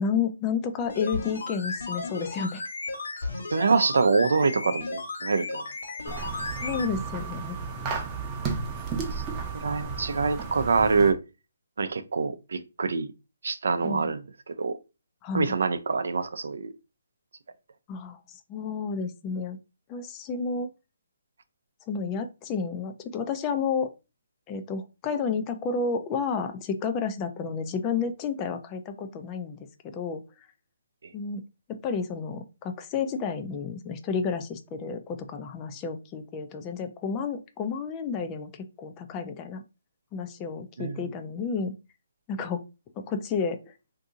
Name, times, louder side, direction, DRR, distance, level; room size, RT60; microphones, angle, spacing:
voice 1, 0.0-2.6 6.6-7.6 13.8-14.1 15.2-15.5 17.9-19.6 19.9-20.7 21.9-23.9 24.5-30.2 31.1-31.4 31.7-39.6 40.1-41.7 42.3-42.6 43.0-43.6, left 5 dB, 20° left, 0.4 m, -31 dB
sound 1, 0.8-6.9 7.2-7.3, left 3 dB, 80° left, 1.3 m, -35 dB
voice 2, 3.5-5.6 8.4-8.5 9.5-11.2 11.8-13.1 13.4-14.2 14.5-14.8 15.3-16.7 40.8-41.0, right 4 dB, 70° right, 0.4 m, -25 dB
sound 2, 6.1-11.1, right 5 dB, 20° right, 0.6 m, -33 dB
2.7 x 2.6 x 3.7 m
hypercardioid pair, 155°, 0 cm